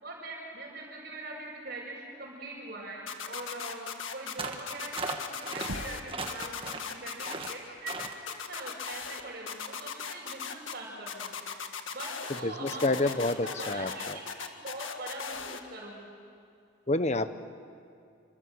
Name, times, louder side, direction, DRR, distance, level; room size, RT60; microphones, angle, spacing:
voice 1, 0.0-11.3 11.9-16.1, right 2 dB, 45° right, -7 dB, 6.1 m, -42 dB
sound 1, 3.1-4.3 4.7-6.0 6.3-7.5 7.9-9.2 9.5-10.7 11.1-12.4 12.7-15.6, left 6 dB, 80° left, 1.8 m, -38 dB
sound 2, 4.4-4.7 4.9-5.7 6.1-6.9 7.2-7.5 7.9-8.2, right 3 dB, 25° right, 1.7 m, -37 dB
Knock, 5.7-6.3, right 1 dB, 85° right, 1.4 m, -40 dB
voice 2, 12.4-14.2 16.9-17.3, left 2 dB, 35° left, 11 dB, 1.0 m, -28 dB
28.5 x 25.5 x 8.0 m, 2.4 s
head